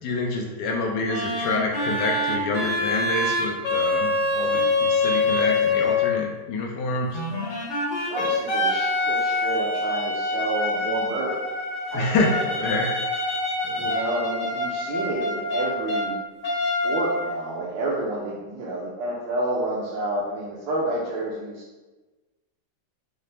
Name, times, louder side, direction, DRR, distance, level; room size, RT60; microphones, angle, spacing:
voice 1, 0.0-7.2 11.9-12.9 13.6-13.9, left 2 dB, 75° left, 1 dB, 1.2 m, -27 dB
sound 1, 1.1-6.2 7.1-16.1 16.4-17.5, left 2 dB, 45° left, 1.1 m, -25 dB
voice 2, 8.1-11.3 11.9-12.7 13.8-16.2 16.6-21.6, right 2 dB, 80° right, -6 dB, 1.3 m, -30 dB
5.6 x 2.0 x 3.3 m, 1.2 s
omnidirectional pair, 2.0 m